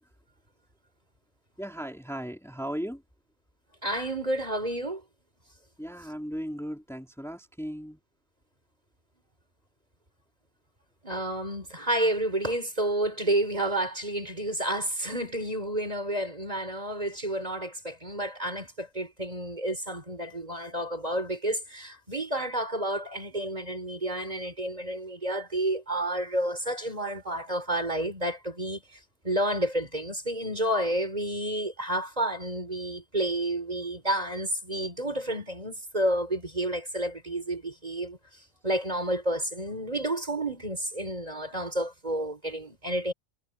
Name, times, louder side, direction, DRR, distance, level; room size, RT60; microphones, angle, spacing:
voice 1, 1.6-3.0 5.8-8.0, equal, ahead, 3.7 m, -36 dB
voice 2, 3.8-5.0 11.0-28.8 29.2-38.2 38.6-43.1, right 1 dB, 30° right, 4.8 m, -30 dB
omnidirectional pair, 1.4 m